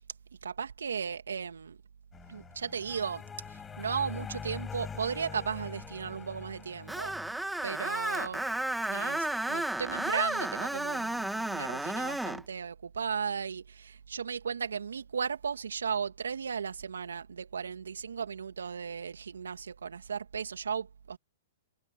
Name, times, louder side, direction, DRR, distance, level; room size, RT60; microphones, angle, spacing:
voice 1, 0.4-1.8 2.3-7.1 7.6-8.4 8.9-21.2, right 6 dB, 80° right, 2.9 m, -36 dB
sound 1, 2.1-7.3, left 6 dB, 15° left, 6.6 m, -43 dB
Screech, 6.9-12.4, right 1 dB, 5° right, 1.9 m, -33 dB
hypercardioid pair, 120°, 0 cm